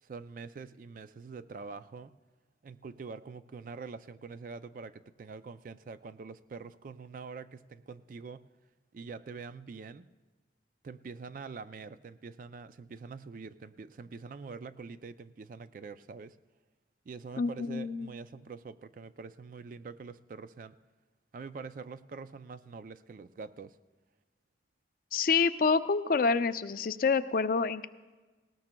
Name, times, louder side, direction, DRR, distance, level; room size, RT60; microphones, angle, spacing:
voice 1, 0.0-2.2 2.6-8.5 8.9-10.1 10.8-16.4 17.1-20.8 21.3-23.8, right 4 dB, 45° right, 13 dB, 0.3 m, -45 dB
voice 2, 17.4-18.1 25.1-27.9, left 4 dB, 50° left, 10 dB, 0.4 m, -27 dB
19.0 x 18.0 x 2.2 m, 1.3 s
head